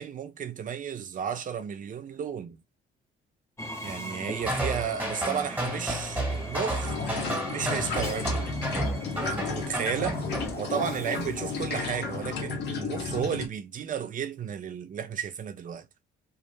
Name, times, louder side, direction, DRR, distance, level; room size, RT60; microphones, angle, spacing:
voice 1, 0.0-2.6 3.8-6.9 7.5-8.5 9.2-10.2 10.6-15.9, right 8 dB, 40° right, 0.5 m, -33 dB
Train, 3.6-12.8, equal, 15° left, 0.7 m, -42 dB
sound 1, 4.4-10.5, right 1 dB, 10° right, 1.1 m, -32 dB
sound 2, 6.8-13.5, left 5 dB, 60° left, 0.8 m, -33 dB
2.4 x 2.1 x 3.2 m
cardioid pair, 90°, 20 cm